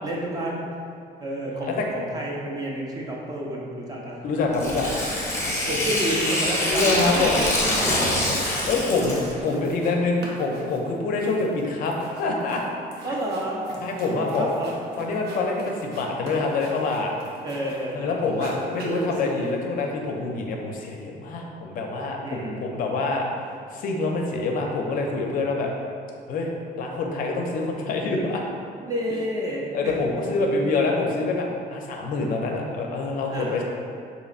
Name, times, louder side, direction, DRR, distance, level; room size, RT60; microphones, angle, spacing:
voice 1, 0.0-0.7 1.2-4.2 5.7-8.4 13.0-13.6 14.2-14.7 17.4-18.2 22.2-22.6 28.8-29.9 30.5-30.6 33.3-33.6, right 1 dB, 20° right, -3 dB, 0.4 m, -30 dB
voice 2, 1.6-1.9 4.2-4.9 5.5-5.8 6.6-7.4 8.2-12.6 13.8-14.5 15.0-17.1 17.9-23.3 23.7-25.7 26.3-28.4 29.7-33.6, left 3 dB, 55° left, 1 dB, 0.4 m, -26 dB
Tearing, 4.5-9.4, left 1 dB, 15° left, 0.7 m, -25 dB
sound 1, 8.2-8.4 8.7-10.0 10.2-17.9 18.2-19.5, right 1 dB, 75° right, 0.7 m, -40 dB
4.1 x 2.8 x 2.4 m, 2.5 s
cardioid pair, 150°, 17 cm